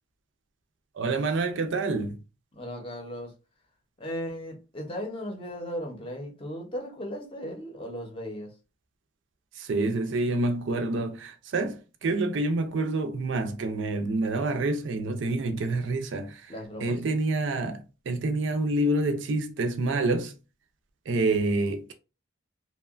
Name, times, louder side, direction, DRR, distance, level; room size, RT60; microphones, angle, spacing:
voice 1, 0.9-2.2 9.6-16.5 16.8-20.3 21.1-21.9, right 2 dB, 60° right, 0.4 m, -27 dB
voice 2, 2.5-3.3 4.0-8.5 16.5-17.0, equal, 25° left, 0.7 m, -36 dB
2.8 x 2.2 x 2.4 m
head